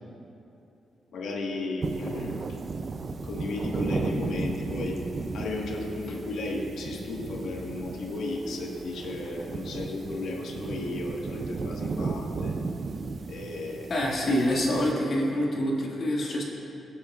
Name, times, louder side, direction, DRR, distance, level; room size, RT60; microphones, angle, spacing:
voice 1, 1.1-2.6 3.2-5.0 5.3-12.6 13.3-13.9, left 2 dB, 75° left, 0 dB, 1.5 m, -34 dB
sound 1, 1.8-14.9, right 4 dB, 35° right, 0.4 m, -35 dB
voice 2, 13.9-16.4, equal, 45° left, -3 dB, 2.0 m, -26 dB
21.5 x 8.7 x 2.4 m, 2.8 s
wide cardioid pair, 165°, 0 cm